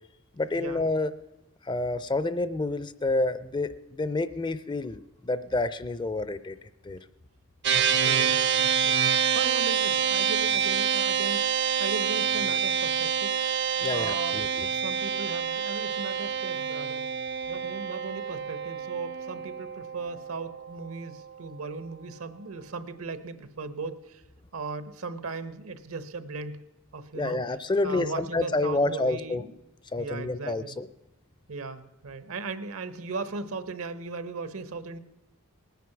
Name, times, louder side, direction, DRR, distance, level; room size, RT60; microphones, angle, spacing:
voice 1, 0.4-1.1 1.6-6.6 6.8-7.0 13.8-14.7 27.1-29.4 29.9-30.9, left 2 dB, 20° left, 14 dB, 0.4 m, -29 dB
sound 1, 7.6-21.2, right 8 dB, 50° right, 0.6 m, -27 dB
voice 2, 7.7-9.1 9.3-13.3 13.9-14.4 14.7-17.1 17.5-24.2 24.5-26.6 26.9-27.4 27.8-29.6 30.0-30.8 31.5-35.0, right 3 dB, 70° right, 13 dB, 0.9 m, -37 dB
19.5 x 9.3 x 5.9 m, 0.94 s
head